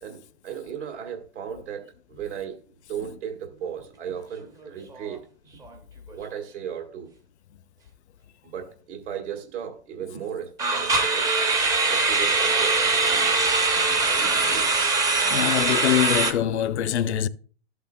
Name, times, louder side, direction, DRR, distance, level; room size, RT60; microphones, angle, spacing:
voice 1, 0.0-2.6 2.9-5.2 6.1-7.1 8.4-11.3 11.9-13.5 13.9-14.7, right 8 dB, 75° right, 2.0 m, -36 dB
sound 1, 4.4-4.7 5.0-5.2 5.6-5.7 10.6-16.3, right 3 dB, 10° right, 0.5 m, -22 dB
voice 2, 15.2-17.3, left 11 dB, 70° left, 0.7 m, -24 dB
13.5 x 8.1 x 2.2 m
hypercardioid pair, 140°, 35 cm